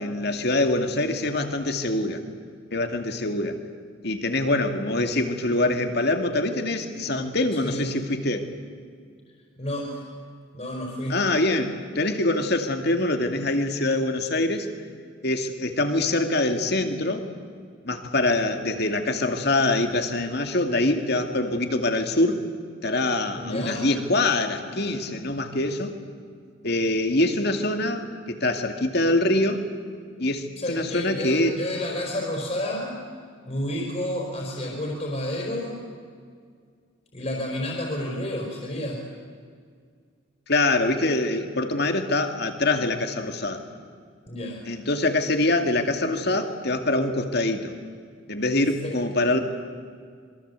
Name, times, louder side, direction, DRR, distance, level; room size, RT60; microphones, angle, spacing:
voice 1, 0.0-2.2 2.7-3.6 4.0-8.5 11.1-14.7 15.2-17.2 17.8-22.4 22.8-26.0 26.6-29.7 30.2-31.5 40.5-43.6 44.7-47.7 48.3-49.4, left 2 dB, 55° left, 6 dB, 2.4 m, -24 dB
voice 2, 7.5-8.0 9.6-10.0 10.5-11.2 23.4-23.9 30.6-32.9 33.4-35.8 37.1-39.0 44.3-44.6 48.8-48.9, left 1 dB, 35° left, -2 dB, 4.6 m, -30 dB
26.5 x 22.5 x 8.3 m, 2.1 s
head